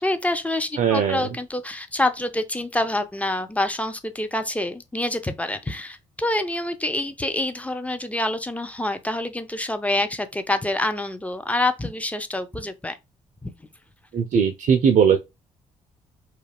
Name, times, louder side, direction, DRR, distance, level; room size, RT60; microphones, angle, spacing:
voice 1, 0.0-13.0 13.4-13.5, left 1 dB, 10° left, 0.5 m, -26 dB
voice 2, 0.8-1.3 14.1-15.2, right 7 dB, 45° right, 0.4 m, -19 dB
2.3 x 2.1 x 3.3 m
figure-of-eight pair, 40°, 18 cm